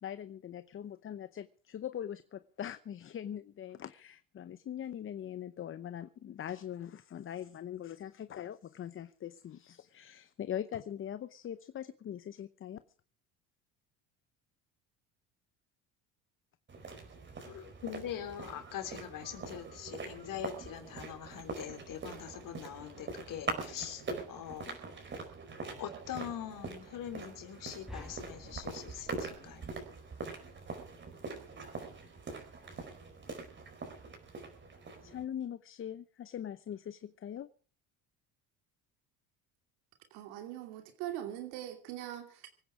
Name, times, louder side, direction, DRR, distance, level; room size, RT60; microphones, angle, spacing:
voice 1, 0.0-12.8 35.0-37.5, left 10 dB, 35° left, 0.7 m, -42 dB
sound 1, 16.7-35.2, right 4 dB, 30° right, 4.5 m, -43 dB
voice 2, 17.4-24.0 24.3-24.7 25.8-29.6, left 10 dB, 60° left, 3.9 m, -43 dB
sound 2, 27.9-30.3, left 1 dB, ahead, 3.6 m, -51 dB
voice 3, 40.1-42.6, right 12 dB, 85° right, 2.6 m, -42 dB
24.5 x 9.5 x 4.9 m
cardioid pair, 115°, 37 cm